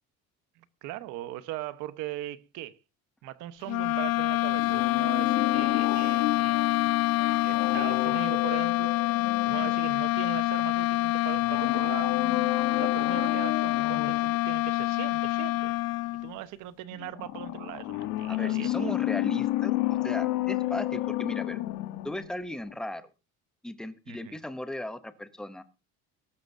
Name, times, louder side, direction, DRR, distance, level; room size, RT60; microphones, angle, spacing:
voice 1, 0.6-2.8 3.2-9.2 9.4-15.7 16.2-19.0 24.1-24.4, right 14 dB, 75° right, 1.2 m, -40 dB
sound 1, 3.7-16.4, left 18 dB, 55° left, 0.6 m, -26 dB
sound 2, 4.6-10.3 11.4-14.4 17.2-22.4 22.6-22.7, left 16 dB, 90° left, 1.2 m, -31 dB
voice 2, 18.3-19.7 20.0-21.6 22.0-23.1 23.6-25.6, left 1 dB, ahead, 0.8 m, -37 dB
21.0 x 12.0 x 2.7 m
cardioid pair, 170°, 31 cm